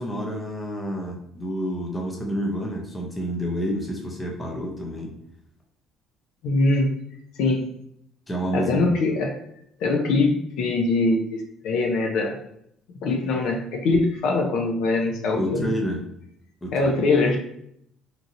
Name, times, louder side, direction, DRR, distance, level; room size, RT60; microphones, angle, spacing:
voice 1, 0.0-5.2 8.3-8.8 15.3-16.0 16.6-16.9, equal, 10° left, 0 dB, 0.6 m, -29 dB
voice 2, 6.4-6.9 7.4-7.6 8.5-9.4 9.8-12.4 13.0-15.7 16.7-17.4, left 3 dB, 65° left, 2 dB, 0.5 m, -22 dB
2.9 x 2.6 x 2.5 m, 0.73 s
cardioid pair, 140°, 0 cm